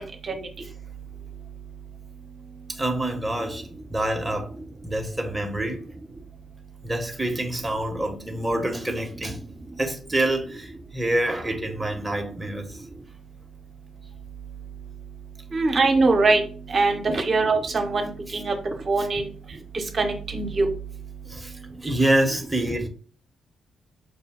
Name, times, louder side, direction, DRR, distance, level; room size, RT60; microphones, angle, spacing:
voice 1, 2.7-4.5 4.8-5.8 6.8-9.4 9.8-12.8 17.1-17.2 18.3-18.4 19.0-19.1 21.2-22.9, right 1 dB, 10° right, 1.0 m, -27 dB
voice 2, 15.5-16.4 16.7-18.5 18.9-19.3 20.0-20.7, right 3 dB, 45° right, 0.9 m, -22 dB
5.4 x 2.2 x 3.6 m
hypercardioid pair, 40°, 0 cm